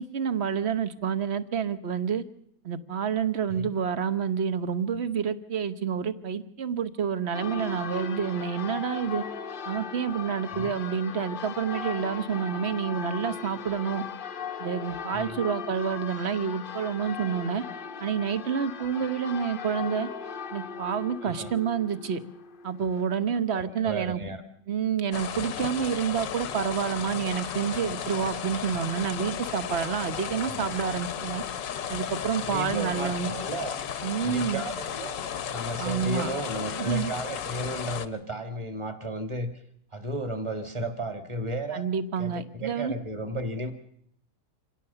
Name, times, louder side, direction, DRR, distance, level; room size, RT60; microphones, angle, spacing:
voice 1, 0.0-2.2 2.6-9.2 9.7-14.0 14.6-17.6 18.0-20.1 20.5-22.2 22.6-24.2 24.7-31.4 31.9-33.3 34.0-34.6 35.8-36.3 36.8-37.1 41.7-42.9, right 7 dB, 45° right, 13 dB, 1.1 m, -28 dB
Church bell, 7.3-23.1, left 6 dB, 40° left, 0.8 m, -38 dB
voice 2, 21.2-21.5 23.5-24.4 30.4-30.7 32.4-33.8 34.2-35.2 35.5-39.5 39.9-41.9 42.2-43.7, right 1 dB, 15° right, 8 dB, 1.8 m, -34 dB
sound 1, 25.1-38.1, left 8 dB, 85° left, 1.7 m, -34 dB
26.5 x 17.0 x 6.9 m, 0.71 s
omnidirectional pair, 1.9 m